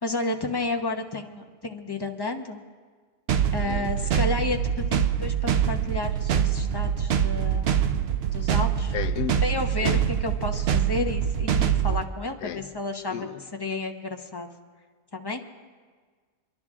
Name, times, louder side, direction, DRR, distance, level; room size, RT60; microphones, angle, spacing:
voice 1, 0.0-2.6 3.5-7.9 8.3-8.9 9.4-13.3 13.6-14.5 15.1-15.4, left 2 dB, 20° left, 0.7 m, -31 dB
sound 1, 3.3-12.0, right 8 dB, 60° right, 0.7 m, -24 dB
voice 2, 3.6-4.2 8.9-9.4 9.8-10.1 12.4-12.7 13.1-13.5, left 10 dB, 70° left, 1.1 m, -34 dB
28.0 x 11.0 x 3.6 m
omnidirectional pair, 1.5 m